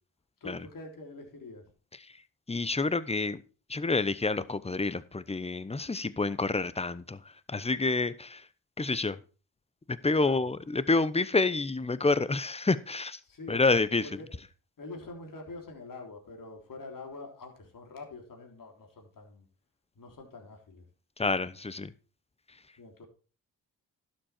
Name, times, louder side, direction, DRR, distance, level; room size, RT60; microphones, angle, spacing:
voice 1, 0.4-1.7 10.2-10.5 13.2-13.8 14.0-14.3 14.8-19.5 20.0-20.8 22.8-23.1, left 3 dB, 60° left, 3.5 m, -45 dB
voice 2, 2.5-3.4 3.7-7.2 7.5-8.4 8.8-9.2 10.0-13.2 13.5-14.1 21.2-21.9, left 3 dB, 15° left, 0.9 m, -28 dB
11.5 x 7.7 x 4.4 m
supercardioid pair, 50°, 38 cm